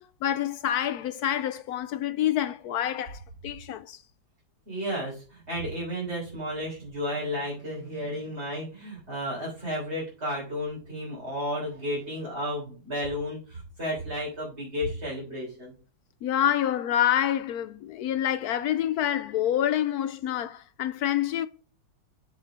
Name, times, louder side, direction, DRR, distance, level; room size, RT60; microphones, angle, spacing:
voice 1, 0.0-4.0 16.2-21.5, left 11 dB, 75° left, 0.8 m, -27 dB
voice 2, 4.7-15.7, equal, 30° right, 4.1 m, -33 dB
7.3 x 6.9 x 4.9 m
omnidirectional pair, 2.1 m